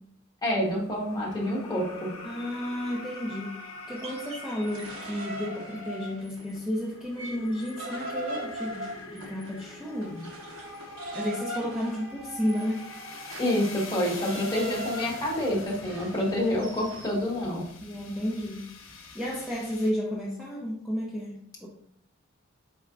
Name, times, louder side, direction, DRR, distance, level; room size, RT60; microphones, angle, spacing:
voice 1, 0.4-2.1 13.4-17.6, left 1 dB, 20° left, -3 dB, 1.2 m, -28 dB
sound 1, 0.6-19.9, left 2 dB, 80° left, 0.8 m, -44 dB
voice 2, 2.2-10.4 11.1-12.8 17.8-18.7 19.1-21.7, equal, 5° right, -4 dB, 0.6 m, -32 dB
sound 2, 3.8-6.6 6.9-17.2, right 1 dB, 75° right, 0.9 m, -40 dB
4.5 x 4.3 x 2.5 m, 0.70 s
head